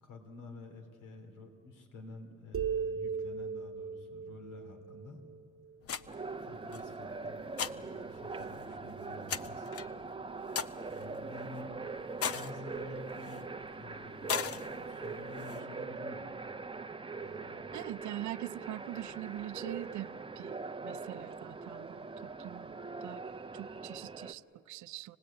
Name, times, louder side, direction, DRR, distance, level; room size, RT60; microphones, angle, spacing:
voice 1, 0.0-5.2 6.3-9.7 10.9-11.7 12.2-13.4 13.8-16.3 17.1-17.7, left 2 dB, 85° left, 3.2 m, -50 dB
sound 1, 2.5-6.1, right 6 dB, 50° right, 1.3 m, -38 dB
sound 2, 5.8-15.6, left 7 dB, 50° left, 0.8 m, -42 dB
sound 3, 6.1-24.3, right 4 dB, 15° right, 0.8 m, -42 dB
voice 2, 17.7-25.2, right 14 dB, 70° right, 0.5 m, -43 dB
26.5 x 19.0 x 8.7 m
cardioid pair, 90°, 30 cm